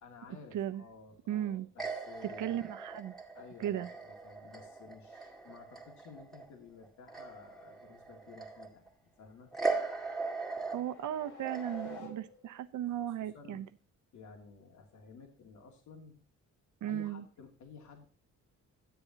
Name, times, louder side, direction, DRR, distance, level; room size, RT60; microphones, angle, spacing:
voice 1, 0.0-2.6 3.3-9.5 12.9-13.7 14.1-16.2 16.9-18.1, left 5 dB, 70° left, 2.4 m, -53 dB
voice 2, 1.3-1.7 2.2-3.1 3.6-3.9 10.7-13.6 16.8-17.2, right 11 dB, 80° right, 0.9 m, -36 dB
sound 1, 1.8-6.5 6.8-8.9 9.5-12.0, right 4 dB, ahead, 2.1 m, -39 dB
sound 2, 9.4-12.7, left 4 dB, 85° left, 3.2 m, -51 dB
10.5 x 10.0 x 2.9 m
cardioid pair, 135°, 30 cm